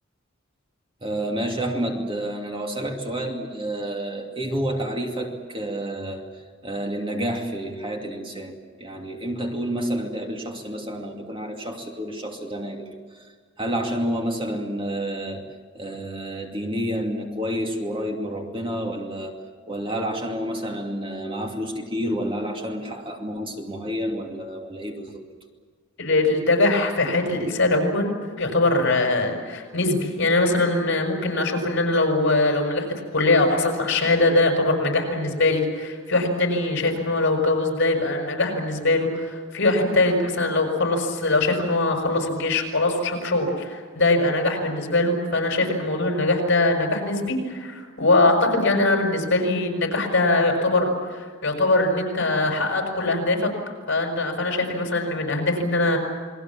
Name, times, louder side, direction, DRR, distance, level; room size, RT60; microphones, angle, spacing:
voice 1, 1.0-6.3 6.6-12.9 13.6-25.2, right 1 dB, 25° right, 2 dB, 2.6 m, -29 dB
voice 2, 26.0-32.9 33.1-53.4 53.9-56.0, left 2 dB, 60° left, 3 dB, 6.0 m, -22 dB
28.5 x 21.5 x 7.4 m, 1.5 s
head